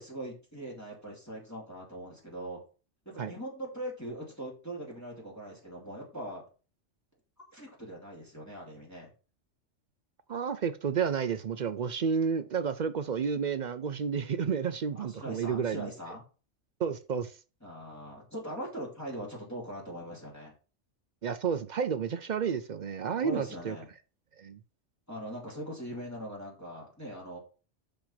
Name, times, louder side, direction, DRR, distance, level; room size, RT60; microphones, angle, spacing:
voice 1, 0.0-2.6 3.0-6.4 7.5-9.1 14.9-16.2 17.6-20.5 23.1-23.9 25.1-27.4, equal, 15° left, 2.8 m, -41 dB
voice 2, 10.3-15.9 16.8-17.3 21.2-23.8 24.4-24.6, right 6 dB, 55° right, 0.5 m, -31 dB
5.9 x 5.1 x 5.7 m
omnidirectional pair, 1.3 m